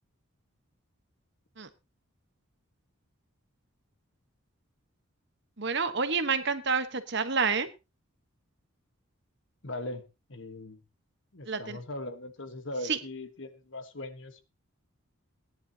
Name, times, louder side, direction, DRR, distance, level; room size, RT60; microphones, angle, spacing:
voice 1, 5.6-7.7 11.5-11.8 12.8-13.0, right 5 dB, 55° right, 9 dB, 1.2 m, -28 dB
voice 2, 9.6-10.8 11.3-14.4, left 1 dB, 60° left, 9 dB, 1.4 m, -40 dB
18.5 x 10.5 x 2.9 m, 0.26 s
head